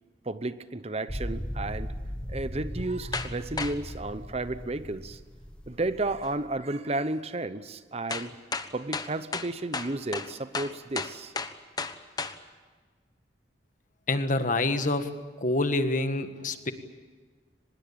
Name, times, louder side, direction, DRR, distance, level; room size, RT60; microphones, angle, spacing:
voice 1, 0.2-1.9 2.3-5.2 5.7-8.4 8.7-11.3, right 2 dB, 35° right, 13 dB, 0.9 m, -32 dB
sound 1, 1.1-6.4, equal, 5° left, 1.5 m, -37 dB
sound 2, 3.1-3.3 3.6-3.8 6.2-6.3 8.1-12.4, left 4 dB, 20° left, 1.1 m, -33 dB
voice 2, 14.1-15.1 15.4-16.7, left 2 dB, 45° left, 9 dB, 1.6 m, -26 dB
24.5 x 21.0 x 8.7 m, 1.4 s
head